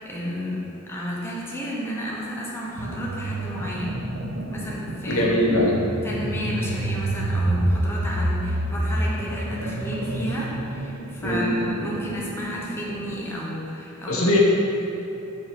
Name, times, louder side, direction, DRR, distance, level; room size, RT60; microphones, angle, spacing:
voice 1, 0.0-3.9 4.5-5.3 6.0-14.3, equal, 10° left, -5 dB, 0.9 m, -32 dB
sound 1, 2.8-13.3, right 1 dB, 70° right, 0.7 m, -28 dB
voice 2, 5.1-5.8 11.2-11.5 14.1-14.4, left 1 dB, 85° left, -3 dB, 1.1 m, -21 dB
5.0 x 4.7 x 5.9 m, 2.9 s
head